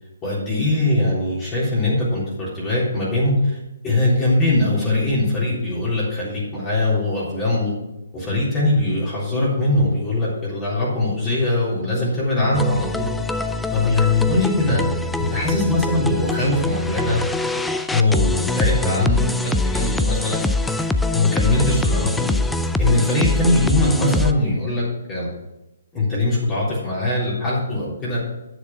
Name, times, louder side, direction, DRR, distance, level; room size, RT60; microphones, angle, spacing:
voice 1, 0.2-3.6 3.8-7.7 8.1-13.1 13.7-14.8 15.2-17.2 17.9-20.4 21.1-22.3 22.8-25.3 25.9-28.3, left 2 dB, 20° left, -7 dB, 3.7 m, -21 dB
sound 1, 12.5-24.3, left 2 dB, 5° left, 0.4 m, -23 dB
9.8 x 6.8 x 6.0 m, 0.97 s
hypercardioid pair, 145°, 0 cm